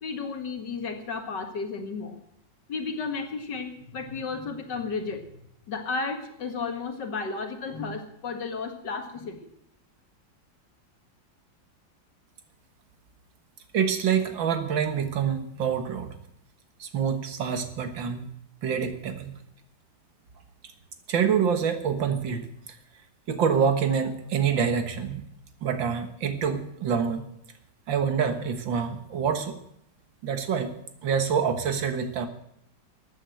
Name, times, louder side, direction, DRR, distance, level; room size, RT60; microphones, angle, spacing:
voice 1, 0.0-2.2 2.7-5.3 5.7-9.4, left 4 dB, 65° left, 5 dB, 2.4 m, -33 dB
voice 2, 13.7-16.1 16.8-18.3 18.6-19.4 21.1-22.5 23.3-25.2 25.6-27.2 27.9-29.6 30.2-30.7 31.0-32.3, right 7 dB, 80° right, 8 dB, 2.2 m, -26 dB
13.5 x 9.2 x 7.8 m, 0.75 s
omnidirectional pair, 2.0 m